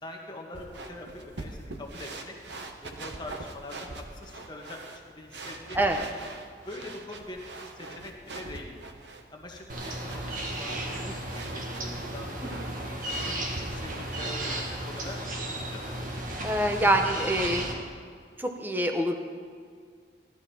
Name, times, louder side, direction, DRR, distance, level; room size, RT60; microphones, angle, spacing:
voice 1, 0.0-2.3 2.8-6.0 6.6-8.7 9.3-12.6 13.1-16.1, left 1 dB, 25° left, 0 dB, 1.4 m, -44 dB
sound 1, 0.5-15.3, right 2 dB, 70° right, 1.1 m, -43 dB
voice 2, 5.7-6.1 11.0-11.1 16.4-17.7 18.4-19.1, right 1 dB, 10° right, 5 dB, 0.8 m, -25 dB
sound 2, 9.7-17.7, right 1 dB, 45° right, 1.6 m, -34 dB
16.5 x 12.0 x 4.3 m, 2.1 s
head